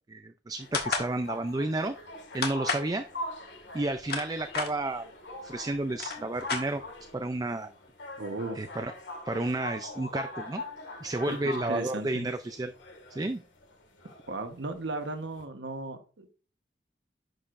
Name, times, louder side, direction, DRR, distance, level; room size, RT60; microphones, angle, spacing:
voice 1, 0.1-2.0 2.3-3.1 3.7-5.0 5.4-6.8 7.1-7.7 8.6-8.9 9.3-10.6 11.0-12.7 13.1-13.4, right 2 dB, 20° right, 8 dB, 0.4 m, -31 dB
sound 1, 0.6-15.4, left 2 dB, 85° left, 1.9 m, -42 dB
Nerf Roughcut Trigger, 0.7-1.1 2.4-2.9 3.8-4.7 5.5-5.6 5.9-7.1, left 5 dB, 55° left, 1.5 m, -31 dB
voice 2, 8.2-8.6 11.3-12.2 14.3-16.3, right 2 dB, 75° right, 7 dB, 1.1 m, -36 dB
11.0 x 6.6 x 2.5 m, 0.36 s
head